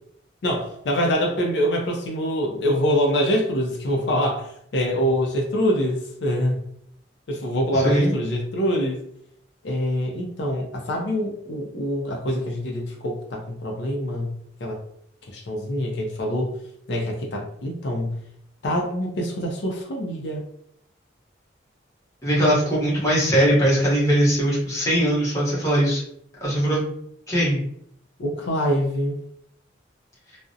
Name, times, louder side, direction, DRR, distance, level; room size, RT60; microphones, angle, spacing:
voice 1, 0.4-6.6 7.3-9.0 9.6-14.3 14.6-14.8 15.3-16.5 16.9-18.2 18.6-20.4 28.2-29.2, equal, 65° left, 0 dB, 0.4 m, -25 dB
voice 2, 7.8-8.1 22.2-26.0 26.4-26.8 27.3-27.6, right 1 dB, 15° left, -6 dB, 0.8 m, -20 dB
2.4 x 2.0 x 2.6 m, 0.70 s
head